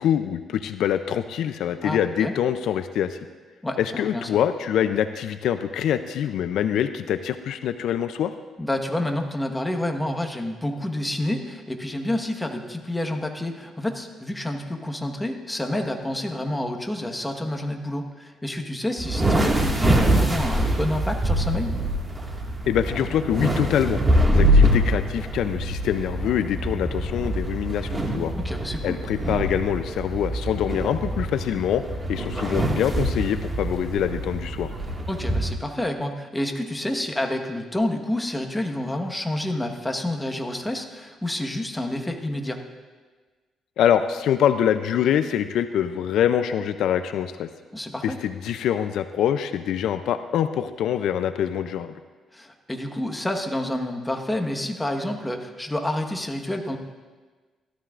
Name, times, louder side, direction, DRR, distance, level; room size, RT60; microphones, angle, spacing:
voice 1, 0.0-3.2 3.8-8.3 22.7-24.0 24.3-28.3 28.8-31.8 32.1-34.7 43.8-47.5 48.0-51.9, left 9 dB, 80° left, 10 dB, 0.4 m, -24 dB
voice 2, 1.8-2.3 3.6-4.3 8.6-21.8 28.3-29.0 35.1-42.6 47.7-48.2 52.3-56.8, left 1 dB, 10° left, 3 dB, 1.3 m, -29 dB
sound 1, 19.0-35.5, equal, 20° right, 1.9 m, -24 dB
16.5 x 13.0 x 2.5 m, 1.4 s
cardioid pair, 90°, 0 cm